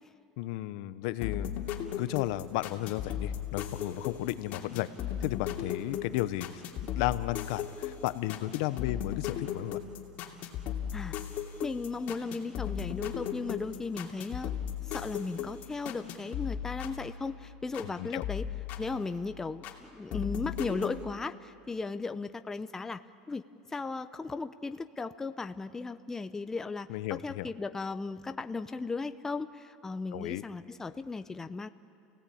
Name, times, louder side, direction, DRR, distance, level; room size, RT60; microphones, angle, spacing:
voice 1, 0.4-1.5 2.0-4.9 5.2-6.6 7.0-9.8 17.8-18.2 26.9-27.5 30.1-30.4, left 16 dB, 75° left, 14 dB, 0.8 m, -33 dB
sound 1, 1.2-17.9 18.2-19.8 20.1-21.0, left 9 dB, 50° left, 2.7 m, -37 dB
voice 2, 11.6-14.6 14.8-18.5 18.8-23.0 23.3-23.4 23.7-26.9 27.2-31.7, left 4 dB, 15° left, 10 dB, 0.6 m, -36 dB
29.5 x 17.5 x 8.6 m, 2.5 s
supercardioid pair, 130°, 4 cm